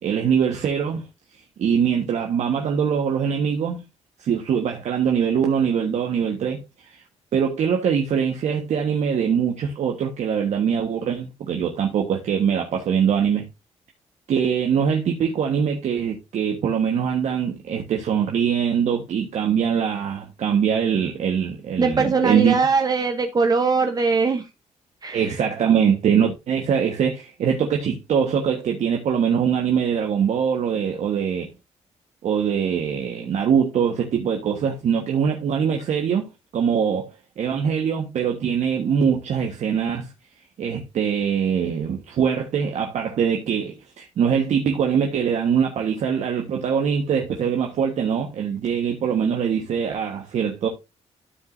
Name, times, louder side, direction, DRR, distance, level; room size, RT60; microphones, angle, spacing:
voice 1, 0.0-1.0 1.6-3.8 4.2-6.6 6.9-7.0 7.3-13.5 14.3-22.5 25.1-31.5 32.2-37.1 37.4-40.1 40.6-50.7, right 7 dB, 70° right, 1.3 m, -23 dB
voice 2, 21.8-24.5 25.0-25.2, right 4 dB, 30° right, 0.8 m, -21 dB
13.0 x 5.0 x 2.6 m
cardioid pair, 105°, 12 cm